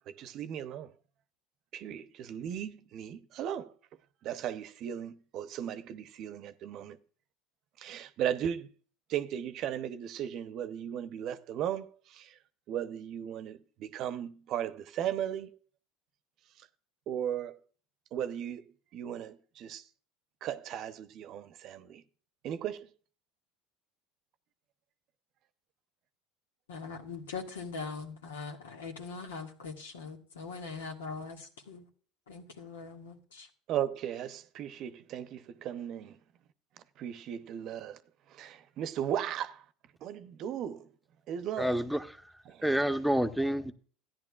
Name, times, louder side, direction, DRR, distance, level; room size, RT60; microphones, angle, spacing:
voice 1, 0.1-0.9 1.7-3.7 4.2-7.0 7.8-8.7 9.1-12.4 12.7-15.6 16.6-16.7 17.1-17.6 18.1-18.7 18.9-19.8 20.4-22.0 22.4-22.9 33.7-36.2 37.0-38.0 38.3-39.6 40.0-40.9 41.3-41.8 42.5-42.7, right 10 dB, 55° right, 0.8 m, -36 dB
voice 2, 26.7-31.9 32.3-33.5, left 4 dB, 90° left, 1.8 m, -41 dB
voice 3, 41.6-42.1 42.6-43.7, right 1 dB, ahead, 0.9 m, -28 dB
14.0 x 10.5 x 2.4 m
hypercardioid pair, 85°, 0 cm